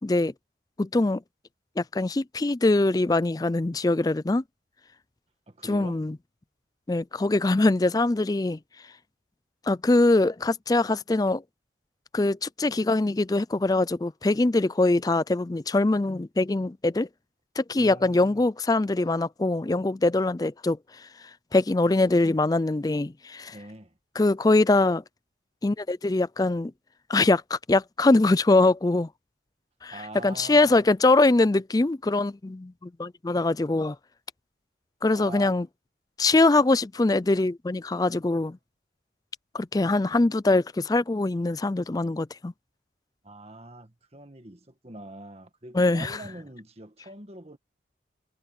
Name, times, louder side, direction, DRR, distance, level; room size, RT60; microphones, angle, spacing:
voice 1, 0.0-0.3 0.8-1.2 1.8-4.4 5.6-6.2 6.9-8.6 9.7-11.4 12.1-17.1 17.6-23.6 24.2-25.0 25.6-26.7 27.1-29.1 29.8-30.0 30.2-34.0 35.0-35.7 36.2-38.6 39.5-42.5 45.7-46.2, left 2 dB, 20° left, 0.4 m, -23 dB
voice 2, 5.5-6.0 17.8-18.5 23.5-23.9 29.9-30.9 35.1-35.6 43.2-47.6, right 1 dB, 35° right, 1.7 m, -44 dB
head